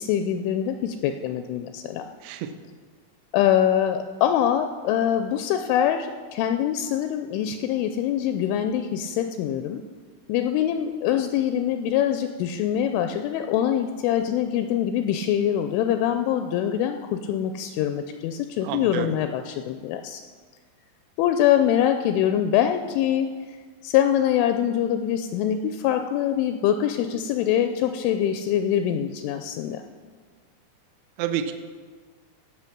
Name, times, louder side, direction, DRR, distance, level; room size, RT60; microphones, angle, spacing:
voice 1, 0.0-2.1 3.3-9.8 10.3-20.2 21.2-23.3 23.8-29.8, left 10 dB, 85° left, 7 dB, 2.8 m, -24 dB
voice 2, 18.6-19.1 31.2-31.5, right 10 dB, 80° right, 9 dB, 2.6 m, -28 dB
17.5 x 6.5 x 6.0 m, 1.5 s
omnidirectional pair, 5.8 m